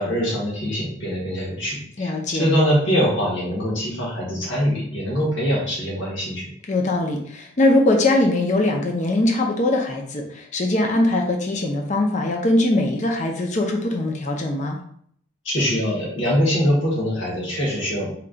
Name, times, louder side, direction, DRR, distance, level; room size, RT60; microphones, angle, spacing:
voice 1, 0.0-6.5 15.4-18.1, equal, 65° left, -5 dB, 1.4 m, -23 dB
voice 2, 2.0-2.5 6.7-14.8, left 1 dB, 35° left, 1 dB, 0.5 m, -21 dB
4.4 x 2.3 x 3.8 m, 0.63 s
head